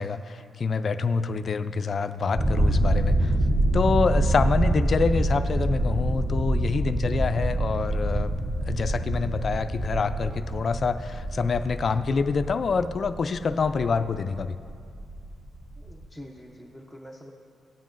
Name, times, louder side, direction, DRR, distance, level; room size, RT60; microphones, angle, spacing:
voice 1, 0.0-3.3 3.7-8.3 8.6-14.6, left 4 dB, 45° left, 11 dB, 0.4 m, -26 dB
sound 1, 2.3-16.0, right 1 dB, 30° right, 2.9 m, -26 dB
voice 2, 15.8-17.3, equal, 5° right, 0 dB, 0.8 m, -45 dB
16.5 x 9.1 x 2.6 m, 2.3 s
cardioid pair, 100°, 0 cm